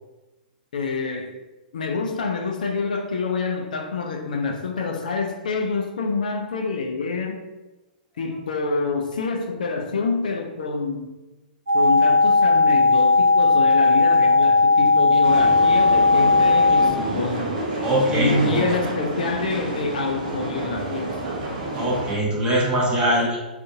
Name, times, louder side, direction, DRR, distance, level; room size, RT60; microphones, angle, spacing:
voice 1, 0.7-1.3 1.7-7.4 8.2-11.1 11.7-17.5 18.1-21.2, left 3 dB, 60° left, 3 dB, 0.4 m, -27 dB
sound 1, 11.7-16.9, left 3 dB, 75° right, 0.8 m, -16 dB
sound 2, 15.2-22.1, right 2 dB, 45° right, 0.6 m, -29 dB
voice 2, 17.8-18.7 21.7-23.4, equal, 20° right, -4 dB, 0.7 m, -22 dB
2.5 x 2.4 x 2.5 m, 1.1 s
figure-of-eight pair, 110°, 5 cm